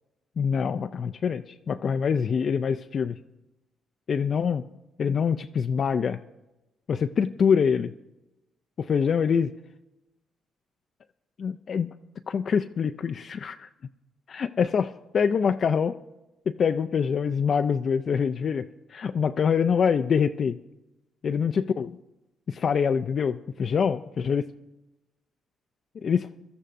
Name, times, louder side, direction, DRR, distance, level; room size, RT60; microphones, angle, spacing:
voice 1, 0.4-3.2 4.1-4.6 5.0-6.2 6.9-7.9 8.8-9.5 11.4-11.9 12.3-13.7 14.3-16.0 16.5-20.6 21.2-22.0 22.5-24.5 26.0-26.3, left 6 dB, 50° left, 8 dB, 0.4 m, -25 dB
24.0 x 13.0 x 2.6 m, 1.0 s
cardioid pair, 90°, 0 cm